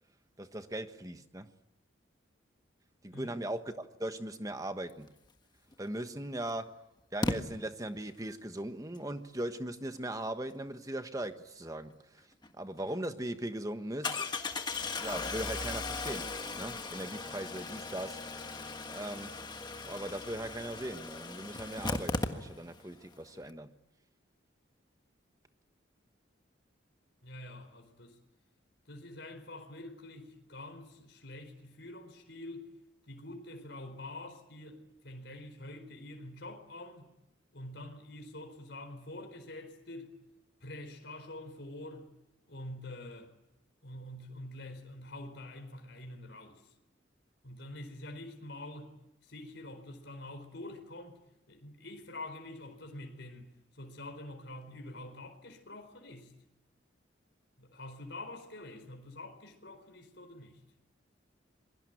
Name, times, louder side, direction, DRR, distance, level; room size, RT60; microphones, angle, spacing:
voice 1, 0.4-1.5 3.0-5.1 5.8-6.8 7.1-12.3 12.5-14.3 15.0-16.3 16.6-18.2 18.9-19.4 19.8-23.7, right 1 dB, 15° right, 1.3 m, -39 dB
Engine starting, 5.7-5.8 7.2-7.4 12.4-12.5 12.9-13.0 14.0-22.8 23.1-23.2 23.4-23.5, left 3 dB, 20° left, 1.5 m, -37 dB
voice 2, 27.2-28.2 28.9-32.7 33.1-37.1 37.5-40.2 40.6-42.1 42.5-43.3 43.8-46.6 47.4-49.0 49.2-51.2 51.5-53.5 53.7-56.3 57.6-60.6, left 1 dB, 60° left, 4.5 m, -46 dB
28.0 x 22.5 x 9.2 m
head